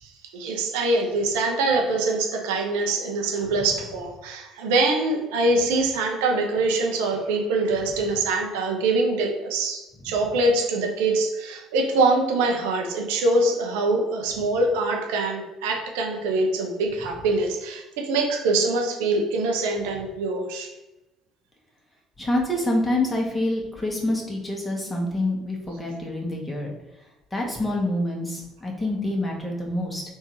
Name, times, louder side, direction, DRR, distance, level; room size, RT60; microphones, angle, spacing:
voice 1, 0.0-20.7, right 2 dB, 80° right, 1 dB, 0.8 m, -24 dB
voice 2, 22.2-26.7 27.3-30.0, left 1 dB, 15° left, -1 dB, 1.5 m, -26 dB
3.6 x 2.7 x 4.7 m, 1.0 s
hypercardioid pair, 60°, 0 cm